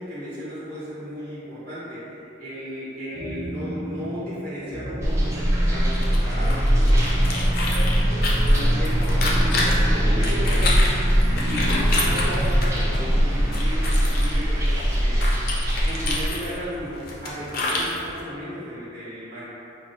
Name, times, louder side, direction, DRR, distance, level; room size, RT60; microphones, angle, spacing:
voice 1, 0.0-7.9 8.3-10.9 11.4-15.3 15.8-19.4, equal, 40° right, -12 dB, 0.7 m, -35 dB
sound 1, 3.1-13.1, right 1 dB, 75° right, 0.8 m, -34 dB
sound 2, 5.0-16.3, equal, 15° right, 0.4 m, -21 dB
sound 3, 5.8-18.2, left 2 dB, 45° left, 0.4 m, -30 dB
5.5 x 2.1 x 2.5 m, 2.9 s
head